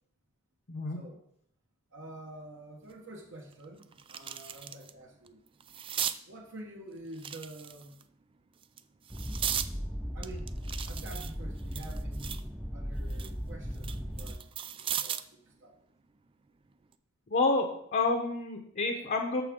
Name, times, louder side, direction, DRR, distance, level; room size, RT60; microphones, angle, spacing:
voice 1, 0.7-1.0 17.3-19.4, left 3 dB, 45° left, 2 dB, 0.9 m, -29 dB
voice 2, 1.9-5.4 6.3-8.0 10.1-10.6 10.9-15.2 15.6-15.7, right 1 dB, 60° right, 0 dB, 1.2 m, -47 dB
sound 1, 2.9-3.0 3.5-4.9 5.3-6.2 7.1-8.0 8.6-9.7 10.2-12.5 12.9-15.3 16.7-16.9, right 9 dB, 25° right, 0.3 m, -37 dB
sound 2, 9.1-14.3, equal, 5° right, 0.7 m, -37 dB
13.0 x 4.8 x 3.7 m, 0.68 s
head